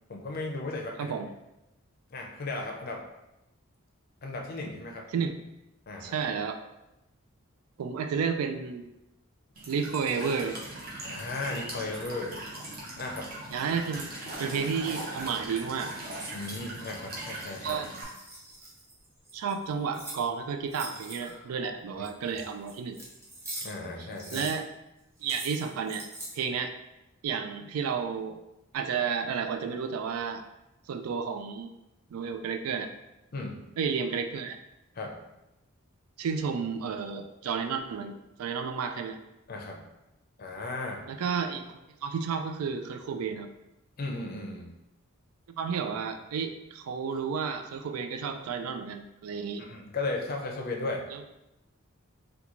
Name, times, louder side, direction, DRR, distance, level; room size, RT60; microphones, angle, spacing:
voice 1, 0.1-1.2 2.1-3.0 4.2-5.0 5.9-6.2 11.0-12.3 13.0-13.3 16.3-17.8 23.6-24.5 33.3-33.7 34.9-35.1 39.5-39.8 40.4-41.0 44.0-44.7 49.6-51.1, left 2 dB, 45° left, 1 dB, 0.5 m, -35 dB
voice 2, 6.0-6.6 7.8-8.9 9.7-10.6 13.5-14.1 14.4-15.9 17.6-17.9 19.3-23.0 24.0-24.7 25.2-26.1 26.3-26.7 27.2-28.4 28.7-30.4 30.9-31.7 32.1-32.9 33.8-34.6 36.2-39.2 41.1-43.5 45.5-49.7 51.1-51.2, right 6 dB, 85° right, 7 dB, 0.3 m, -32 dB
Walk footsteps / Chirp tweet / Stream, 9.6-18.0, right 1 dB, 45° right, 0.8 m, -40 dB
sound 1, 17.8-20.2 20.7-21.5 22.0-23.8 24.1-24.6 25.2-26.4, right 2 dB, 10° right, 0.5 m, -42 dB
3.7 x 2.3 x 2.9 m, 0.92 s
head